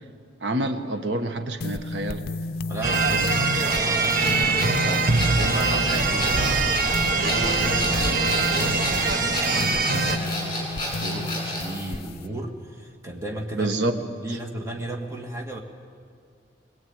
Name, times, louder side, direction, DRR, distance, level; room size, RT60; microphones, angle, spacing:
voice 1, 0.4-2.2 13.6-13.9, right 1 dB, 70° right, 7 dB, 1.2 m, -27 dB
sound 1, 1.6-12.3, left 2 dB, 55° left, 0.6 m, -32 dB
voice 2, 2.7-6.8 7.2-15.6, right 1 dB, 15° right, 1 dB, 2.0 m, -34 dB
sound 2, 2.8-10.2, right 4 dB, 50° right, 1.2 m, -23 dB
sound 3, 3.6-11.7, left 1 dB, 30° left, 7.3 m, -31 dB
22.0 x 20.5 x 8.9 m, 2.2 s
head